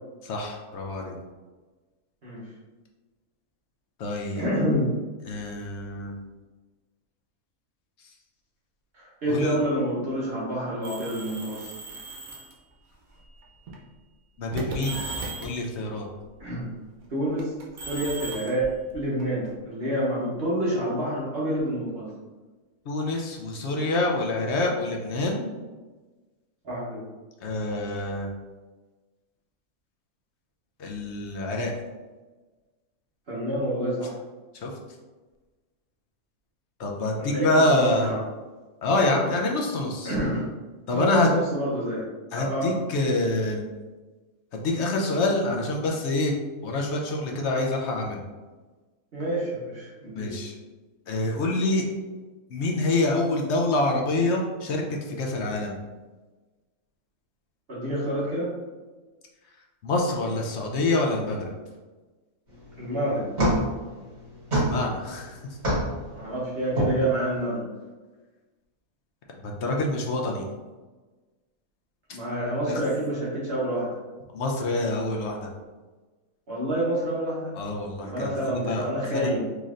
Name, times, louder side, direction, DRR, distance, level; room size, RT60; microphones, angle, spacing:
voice 1, 0.2-1.2 4.0-4.4 5.3-6.1 9.3-9.6 14.4-15.0 15.4-16.1 22.9-25.5 27.4-28.3 30.8-31.7 34.6-34.7 36.8-38.1 38.8-40.1 40.9-41.3 42.3-43.7 44.6-46.3 46.6-48.2 50.1-50.5 51.1-51.8 52.5-55.8 59.8-61.5 64.5-65.4 69.4-70.5 72.7-72.8 74.3-75.4 77.5-79.3, left 2 dB, 60° left, 0 dB, 0.8 m, -26 dB
voice 2, 2.2-2.5 4.3-4.9 8.9-11.7 16.4-16.7 17.1-17.5 17.8-22.1 26.6-27.0 33.3-34.2 37.2-38.2 40.0-40.5 40.9-42.1 42.3-42.7 49.1-50.3 57.7-58.5 62.8-63.3 66.1-67.7 72.1-74.0 76.5-77.5 78.0-79.4, right 1 dB, 45° right, -7 dB, 1.2 m, -28 dB
sound 1, 10.8-12.5 13.4-13.7 14.5-15.6 17.4-19.5, right 2 dB, 80° right, 1.2 m, -36 dB
sound 2, 62.5-67.4, right 1 dB, 30° right, 1.6 m, -29 dB
3.9 x 3.2 x 2.4 m, 1.3 s
omnidirectional pair, 1.5 m